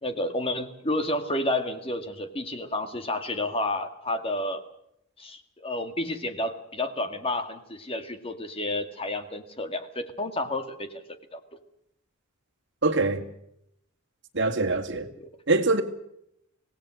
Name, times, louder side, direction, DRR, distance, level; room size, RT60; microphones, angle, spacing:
voice 1, 0.0-4.6 5.2-11.0 11.3-11.4 15.2-15.3, left 1 dB, 25° left, 2.1 m, -30 dB
voice 2, 12.8-13.2 14.3-15.1 15.5-15.8, right 3 dB, 60° right, 2.3 m, -23 dB
25.5 x 18.0 x 6.4 m
head